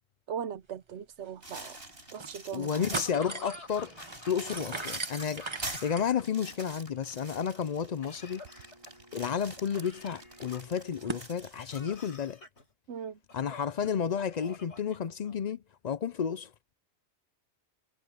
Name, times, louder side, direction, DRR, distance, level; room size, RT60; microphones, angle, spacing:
voice 1, 0.3-1.8 2.1-3.0 12.9-13.2, right 8 dB, 80° right, 1.1 m, -39 dB
sound 1, 0.9-1.0 1.3-1.4 1.9-2.3 2.6-11.3, right 3 dB, 25° right, 1.2 m, -43 dB
sound 2, 1.4-3.2 3.7-11.8, right 1 dB, 55° right, 6.2 m, -45 dB
voice 2, 2.5-4.0 4.3-5.5 5.8-8.4 9.1-12.4 13.3-15.6 15.8-16.5, left 7 dB, 50° left, 0.5 m, -32 dB
Laughter / Cough, 2.9-6.2 6.5-7.3 8.0-9.1 9.8-11.0 11.7-12.6 13.3-13.9 14.3-15.5, left 3 dB, 75° left, 4.2 m, -49 dB
omnidirectional pair, 1.2 m